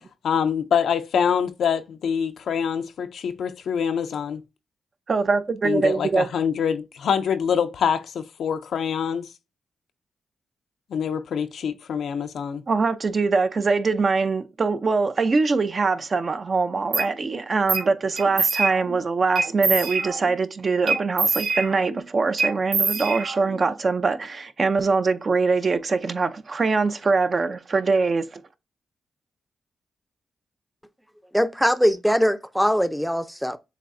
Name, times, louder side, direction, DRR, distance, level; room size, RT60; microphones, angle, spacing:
voice 1, 0.2-4.4 5.6-9.3 10.9-12.6, left 7 dB, 80° left, 0.5 m, -25 dB
voice 2, 5.1-6.3 12.7-28.4, right 4 dB, 50° right, 0.6 m, -23 dB
sound 1, 16.9-17.1 17.7-17.9 18.2-19.0 19.4-20.4 20.9-22.0 22.4-23.6, right 4 dB, 75° right, 1.1 m, -25 dB
voice 3, 31.3-33.6, equal, ahead, 0.6 m, -21 dB
7.2 x 2.6 x 2.6 m
cardioid pair, 70°, 0 cm